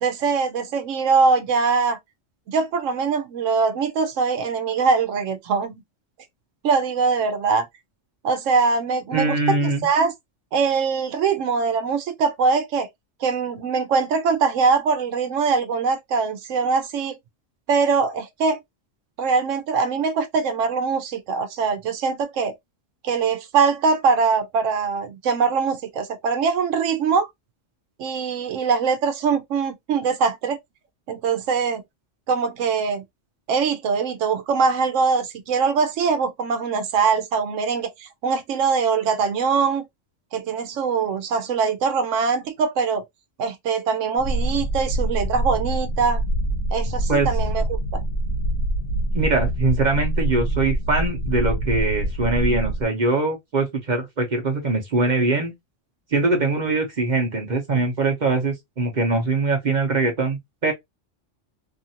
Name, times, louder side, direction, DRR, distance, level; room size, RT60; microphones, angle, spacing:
voice 1, 0.0-2.0 2.5-5.7 6.6-7.7 8.2-10.1 10.5-12.9 13.2-17.2 17.7-18.6 19.2-22.5 23.0-27.3 28.0-30.6 31.1-31.8 32.3-33.0 33.5-39.9 40.3-43.0 43.4-46.2 46.7-48.0, right 5 dB, 90° right, 1.0 m, -22 dB
voice 2, 9.1-9.9 47.1-47.3 49.1-55.5 56.1-60.7, right 3 dB, 40° right, 0.8 m, -22 dB
sound 1, 44.2-52.8, right 1 dB, 65° left, 1.1 m, -25 dB
2.8 x 2.5 x 2.7 m
omnidirectional pair, 1.3 m